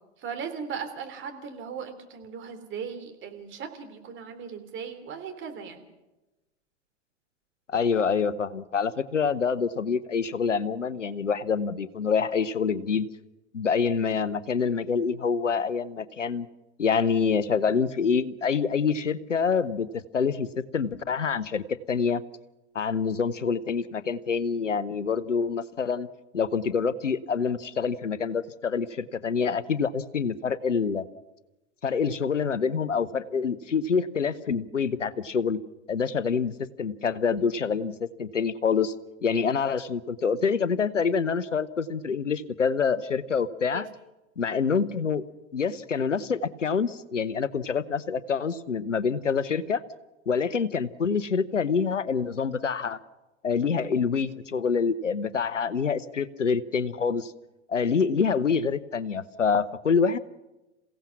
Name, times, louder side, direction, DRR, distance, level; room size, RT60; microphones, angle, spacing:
voice 1, 0.2-5.8 43.7-43.8, right 6 dB, 30° right, 6 dB, 3.5 m, -38 dB
voice 2, 7.7-13.1 13.5-16.5 16.8-20.5 20.7-22.2 22.7-26.1 26.3-31.0 31.8-35.6 35.9-36.5 36.8-38.9 39.2-43.9 44.4-45.2 45.5-49.8 50.3-53.0 53.4-57.3 57.7-60.2, left 6 dB, 90° left, 15 dB, 0.9 m, -26 dB
28.5 x 16.5 x 6.1 m, 1.0 s
figure-of-eight pair, 95°, 36 cm